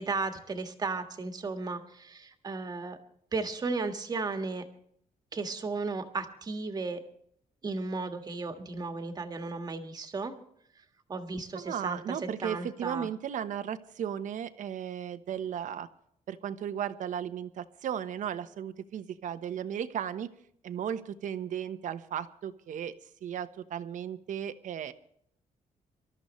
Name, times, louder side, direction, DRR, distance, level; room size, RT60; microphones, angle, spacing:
voice 1, 0.0-3.0 3.3-4.6 5.3-7.0 7.6-10.3 11.1-13.1, right 3 dB, 30° right, 7 dB, 1.6 m, -35 dB
voice 2, 11.5-15.9 16.3-20.3 20.6-22.9 23.2-24.9, right 9 dB, 65° right, 11 dB, 1.1 m, -35 dB
26.0 x 13.5 x 3.2 m, 0.66 s
wide cardioid pair, 175°, 14 cm